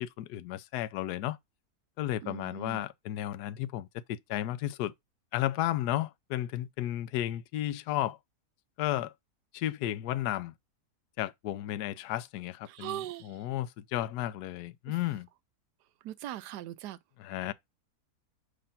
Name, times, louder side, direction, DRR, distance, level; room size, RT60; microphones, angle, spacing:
voice 1, 0.0-1.4 2.0-4.9 5.3-8.2 8.8-9.1 9.5-10.5 11.2-15.3 17.2-17.5, left 13 dB, 75° left, 1.1 m, -33 dB
voice 2, 2.2-2.8 12.7-13.4 14.9-15.0 16.0-17.0, right 14 dB, 80° right, 1.2 m, -40 dB
6.6 x 2.6 x 5.6 m
omnidirectional pair, 1.8 m